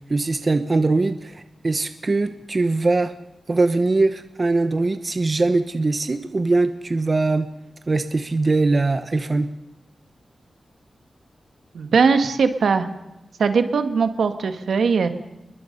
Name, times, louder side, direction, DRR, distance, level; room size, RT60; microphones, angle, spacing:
voice 1, 0.0-3.1 3.5-7.5 7.9-9.5, right 3 dB, 35° right, 9 dB, 1.1 m, -21 dB
voice 2, 11.7-12.9 13.4-15.1, right 5 dB, 80° right, 8 dB, 1.9 m, -20 dB
30.0 x 21.5 x 5.5 m, 0.94 s
wide cardioid pair, 135°, 0 cm